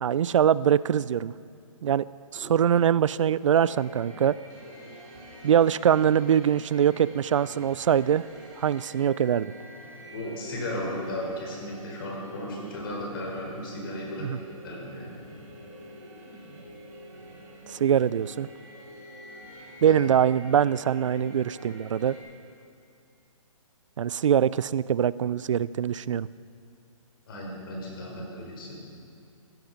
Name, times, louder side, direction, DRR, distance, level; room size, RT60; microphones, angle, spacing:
voice 1, 0.0-1.3 1.8-2.0 2.3-4.3 5.4-8.2 8.6-9.5 14.2-14.4 17.7-18.5 19.8-22.2 24.0-26.3, right 9 dB, 60° right, 19 dB, 0.4 m, -23 dB
sound 1, 3.6-22.2, equal, 35° right, 3.9 m, -46 dB
voice 2, 10.1-14.3 14.6-15.1 19.9-20.0 27.3-28.8, left 1 dB, 40° left, -2 dB, 4.1 m, -35 dB
15.5 x 12.0 x 5.2 m, 2.5 s
hypercardioid pair, 160°, 18 cm